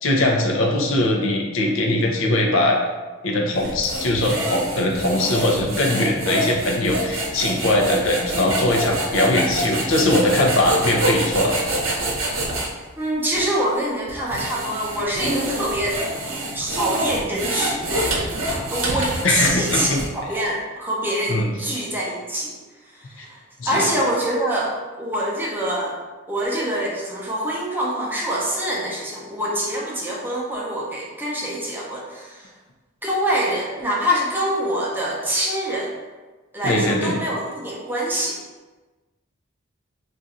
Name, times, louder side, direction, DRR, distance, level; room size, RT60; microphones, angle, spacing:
voice 1, 0.0-2.8 3.2-11.6 19.2-20.0 21.3-21.5 23.2-23.3 23.6-23.9 36.6-37.2, left 1 dB, 75° left, 0 dB, 0.5 m, -21 dB
sound 1, 3.6-12.7 13.3-13.4 14.1-20.3, right 1 dB, 80° right, 0.7 m, -26 dB
voice 2, 13.0-16.0 16.5-18.2 18.7-22.5 22.9-23.4 23.7-26.0 26.3-32.5 33.0-36.0 36.5-38.4, right 1 dB, 10° right, -4 dB, 0.6 m, -25 dB
2.5 x 2.5 x 4.1 m, 1.2 s
head